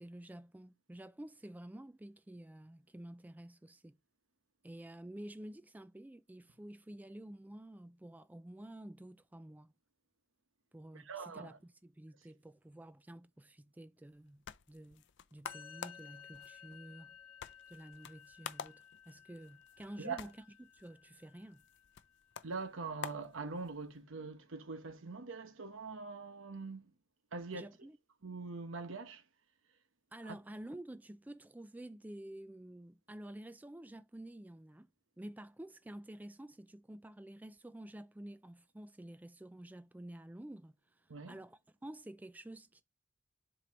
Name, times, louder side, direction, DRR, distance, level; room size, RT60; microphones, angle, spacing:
voice 1, 0.0-4.0 4.6-9.7 10.7-15.0 15.3-17.1 17.7-20.3 20.6-21.6 27.5-28.0 30.1-34.9 35.2-42.8, right 1 dB, 10° right, 0.3 m, -50 dB
voice 2, 10.9-11.6 20.0-20.2 22.4-26.9 27.3-27.7 28.2-29.2 30.3-30.4 41.1-41.4, right 4 dB, 75° right, 1.0 m, -43 dB
sound 1, 14.1-24.0, left 7 dB, 60° left, 0.5 m, -51 dB
Musical instrument, 15.4-22.7, left 8 dB, 10° left, 2.5 m, -57 dB
7.4 x 3.0 x 5.1 m
head